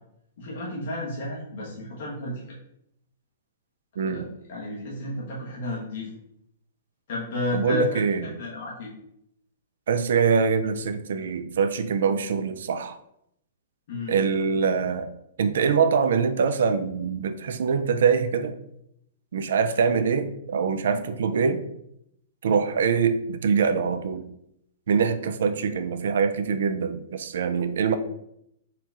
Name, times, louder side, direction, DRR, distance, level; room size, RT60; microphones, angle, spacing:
voice 1, 0.4-2.6 4.0-6.1 7.1-8.9 13.9-14.2, left 2 dB, 60° left, -5 dB, 1.1 m, -32 dB
voice 2, 4.0-4.3 7.5-8.2 9.9-13.0 14.1-15.1 15.4-18.6 19.3-21.6 22.4-24.2 24.9-28.0, right 6 dB, 70° right, 10 dB, 0.4 m, -24 dB
4.3 x 2.3 x 3.8 m, 0.76 s
hypercardioid pair, 120°, 0 cm